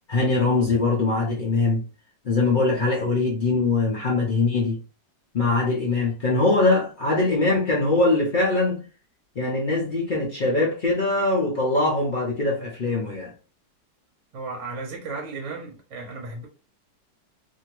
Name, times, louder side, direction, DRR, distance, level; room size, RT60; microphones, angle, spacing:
voice 1, 0.1-1.8 2.2-4.8 5.3-8.8 9.4-13.3, left 3 dB, 80° left, 0.4 m, -22 dB
voice 2, 14.3-16.5, right 3 dB, 55° right, 1.0 m, -34 dB
2.8 x 2.6 x 2.9 m
omnidirectional pair, 2.0 m